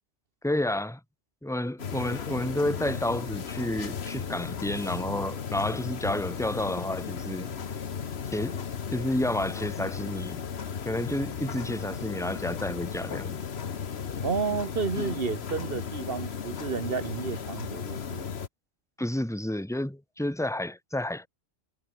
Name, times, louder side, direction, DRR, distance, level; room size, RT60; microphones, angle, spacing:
voice 1, 0.4-1.0 1.4-7.6 8.3-8.6 8.9-10.4 10.9-13.4 19.0-21.3, left 1 dB, ahead, 2.0 m, -30 dB
sound 1, 1.8-18.5, left 7 dB, 60° left, 1.4 m, -35 dB
voice 2, 14.2-18.3, right 5 dB, 50° right, 1.4 m, -31 dB
omnidirectional pair, 1.2 m